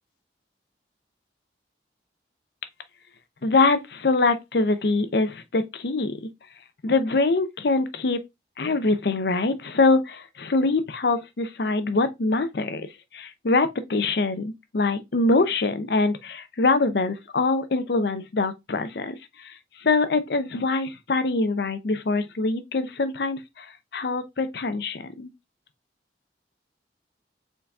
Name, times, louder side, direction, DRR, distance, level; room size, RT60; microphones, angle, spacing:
voice 1, 3.4-6.2 6.8-8.2 8.6-19.5 19.8-25.3, left 3 dB, 60° left, 0.6 m, -24 dB
4.6 x 3.9 x 2.3 m
head